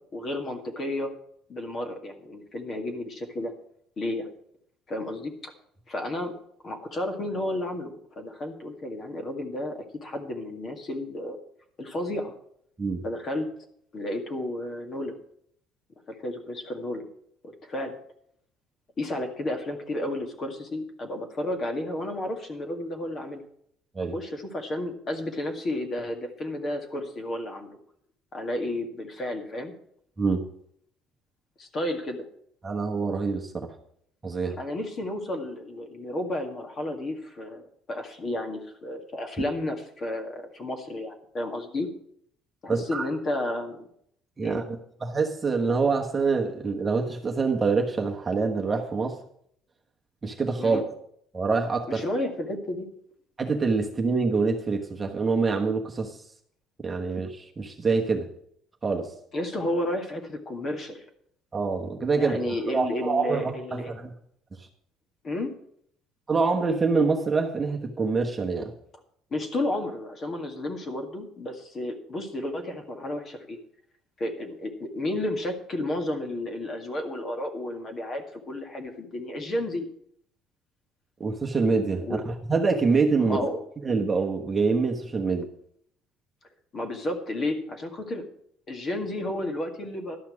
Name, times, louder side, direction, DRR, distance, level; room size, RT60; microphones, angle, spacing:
voice 1, 0.1-1.1 1.5-3.5 4.0-4.3 4.9-5.5 5.9-6.3 6.6-11.4 11.8-12.3 13.0-13.5 13.9-15.1 16.1-17.1 17.4-18.0 19.0-23.4 24.1-27.7 28.3-29.7 31.6-32.3 34.6-41.9 42.6-43.9 44.4-44.6 50.6-50.8 51.9-52.9 59.3-61.0 62.2-64.0 65.2-65.5 69.3-73.6 74.2-79.9 82.0-82.2 83.2-83.6 86.7-88.3 88.7-90.2, left 1 dB, 35° left, 4 dB, 2.0 m, -32 dB
voice 2, 32.6-33.7 34.2-34.6 42.7-43.0 44.4-49.1 50.2-50.9 51.3-52.0 53.4-56.2 56.8-58.3 58.8-59.1 61.5-64.1 66.3-68.7 81.2-83.4 83.8-85.5, right 4 dB, 20° right, 1 dB, 1.2 m, -25 dB
12.0 x 5.8 x 8.4 m, 0.67 s
cardioid pair, 135°, 0 cm